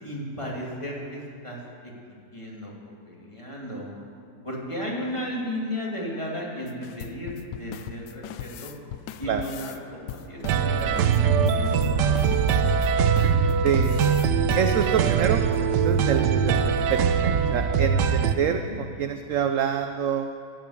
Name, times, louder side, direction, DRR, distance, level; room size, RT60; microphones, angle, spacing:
voice 1, 0.0-1.6 2.3-2.7 3.1-3.9 4.4-7.3 7.6-8.7 9.2-12.5 18.4-18.8, equal, 15° left, -3 dB, 2.4 m, -34 dB
sound 1, 6.7-9.8 10.1-15.1 15.5-15.6 15.9-16.0 16.4-16.6 16.9-17.0 17.4-17.6 18.1-18.5, left 10 dB, 90° left, 1.3 m, -40 dB
sound 2, 10.4-18.3, right 6 dB, 85° right, 1.3 m, -22 dB
voice 2, 13.6-14.0 14.5-20.3, right 8 dB, 70° right, 7 dB, 0.8 m, -27 dB
14.5 x 7.8 x 8.4 m, 2.4 s
omnidirectional pair, 1.8 m